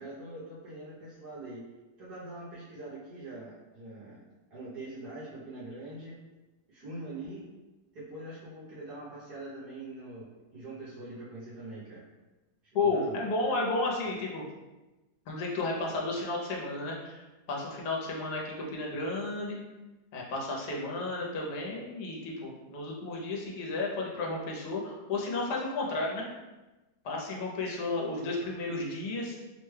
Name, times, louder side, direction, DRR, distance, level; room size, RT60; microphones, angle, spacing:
voice 1, 0.0-1.6 2.0-4.2 4.5-6.2 6.7-7.5 7.9-12.0 12.8-13.2 14.0-14.2, right 2 dB, 75° right, -9 dB, 1.4 m, -43 dB
voice 2, 12.7-14.4 15.3-19.6 20.1-26.3 27.0-29.4, left 2 dB, 75° left, -2 dB, 1.2 m, -32 dB
3.3 x 2.2 x 3.2 m, 1.1 s
omnidirectional pair, 1.8 m